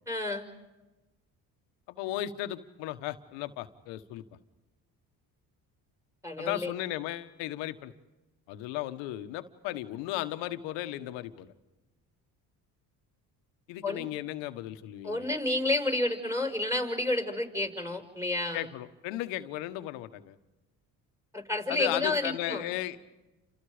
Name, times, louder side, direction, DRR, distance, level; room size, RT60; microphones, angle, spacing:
voice 1, 0.1-0.5 6.2-6.7 13.8-14.0 15.0-18.7 21.3-22.6, left 2 dB, 5° right, 6 dB, 5.6 m, -30 dB
voice 2, 1.9-4.2 6.4-7.9 8.5-11.5 13.7-15.3 18.5-20.4 21.7-23.0, left 14 dB, 90° left, 10 dB, 1.5 m, -35 dB
29.5 x 27.0 x 5.1 m, 1.1 s
supercardioid pair, 80°, 42 cm